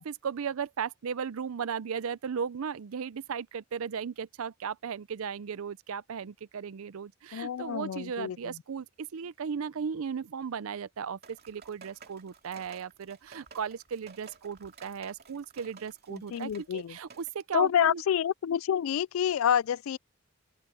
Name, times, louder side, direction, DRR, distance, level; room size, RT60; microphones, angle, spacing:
voice 1, 0.0-18.0, right 6 dB, 80° right, 0.5 m, -36 dB
voice 2, 7.3-8.4 16.1-17.0 17.5-20.0, left 9 dB, 70° left, 0.3 m, -28 dB
sound 1, 11.2-17.3, right 5 dB, 50° right, 2.6 m, -53 dB
open air
head